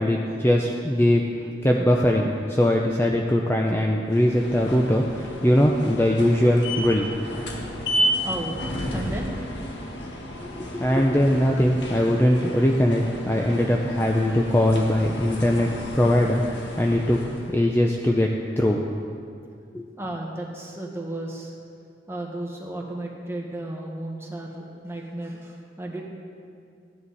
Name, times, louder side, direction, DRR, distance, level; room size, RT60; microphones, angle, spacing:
voice 1, 0.0-7.3 10.4-16.4 16.8-17.2 17.5-18.8 19.7-19.8, left 1 dB, 15° left, 0 dB, 0.6 m, -21 dB
sound 1, 4.1-17.6, equal, 90° left, 1.7 m, -32 dB
voice 2, 8.2-9.3 20.0-21.5 22.1-26.1, right 1 dB, 15° right, -1 dB, 1.4 m, -34 dB
15.5 x 9.9 x 4.1 m, 2.4 s
head